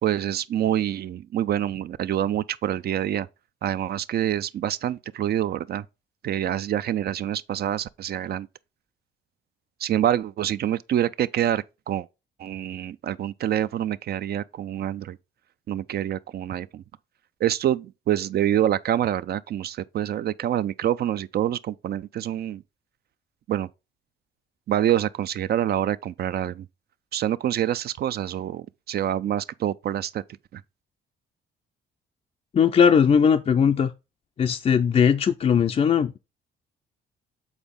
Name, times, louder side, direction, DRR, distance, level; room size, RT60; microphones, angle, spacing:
voice 1, 0.0-3.3 3.6-5.9 6.2-8.5 9.8-12.1 12.4-15.2 15.7-16.8 17.4-22.6 23.5-23.7 24.7-26.7 27.1-30.2 30.5-30.6, right 11 dB, 55° right, 0.4 m, -26 dB
voice 2, 32.5-33.9 34.4-36.2, left 7 dB, 30° left, 0.4 m, -19 dB
7.1 x 3.9 x 3.6 m
cardioid pair, 90°, 20 cm